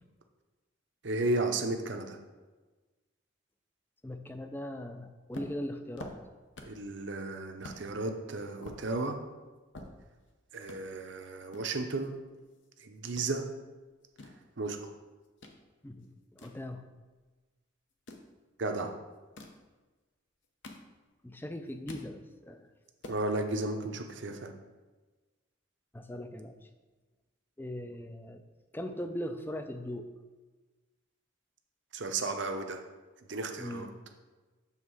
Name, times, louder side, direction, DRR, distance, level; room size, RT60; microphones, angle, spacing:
voice 1, 1.0-2.2 6.7-9.2 10.5-12.1 12.8-13.4 14.2-14.3 14.6-14.9 18.6-18.9 23.1-24.5 31.9-32.8 33.3-33.9, right 2 dB, 60° right, 5 dB, 0.7 m, -34 dB
voice 2, 4.0-6.2 15.8-16.8 21.2-22.7 25.9-26.7 27.6-28.4 28.7-30.1 33.6-34.0, left 1 dB, 10° left, 6 dB, 0.4 m, -40 dB
sound 1, 5.3-6.9 7.2-7.3 7.6-7.8 8.3-10.3 10.6-10.8 11.5-12.7 12.9-13.3 13.9-15.6 16.0-17.3 17.9-18.3 19.1-19.6 20.3-21.2 21.6-22.1 22.5-22.6 22.8-23.2, left 1 dB, 65° left, 0.8 m, -48 dB
7.3 x 3.6 x 6.2 m, 1.3 s
head